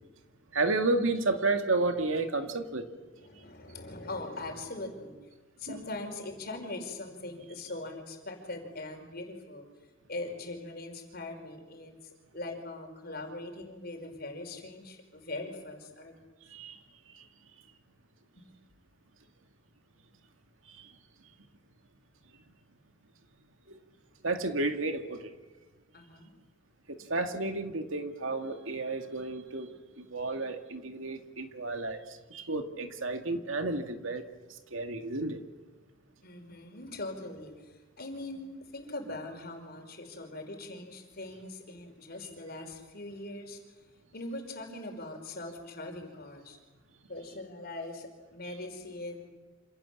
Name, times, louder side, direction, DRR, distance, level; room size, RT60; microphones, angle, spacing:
voice 1, 0.5-2.9 5.7-5.8 16.5-16.8 24.2-25.2 26.9-29.7 30.0-32.0 32.3-34.2 34.7-35.4, right 2 dB, 80° right, 6 dB, 2.3 m, -31 dB
voice 2, 3.2-5.3 5.6-9.7 10.1-16.1 18.4-18.5 25.9-26.3 36.2-43.6 44.1-46.6 47.1-49.3, left 2 dB, 50° left, 4 dB, 5.0 m, -41 dB
28.0 x 27.0 x 7.4 m, 1.3 s
head